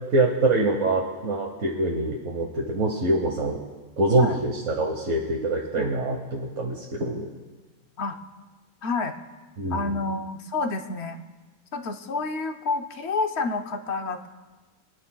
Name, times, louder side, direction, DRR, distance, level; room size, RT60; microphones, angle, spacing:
voice 1, 0.1-3.6 4.0-7.3 9.6-9.9, right 2 dB, 55° right, -1 dB, 1.4 m, -24 dB
voice 2, 8.8-9.1 9.7-11.2 11.7-14.3, left 3 dB, 55° left, 6 dB, 0.8 m, -29 dB
27.5 x 9.7 x 2.3 m, 1.3 s
omnidirectional pair, 1.6 m